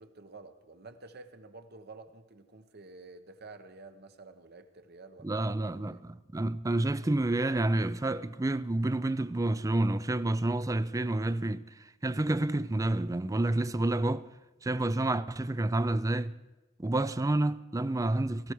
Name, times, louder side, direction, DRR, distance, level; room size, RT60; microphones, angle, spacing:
voice 1, 0.0-5.4 5.9-6.0, right 3 dB, 55° right, 1.2 m, -50 dB
voice 2, 5.2-14.3 14.6-16.3 16.8-18.5, right 2 dB, 15° right, 0.4 m, -29 dB
18.0 x 15.0 x 4.7 m
head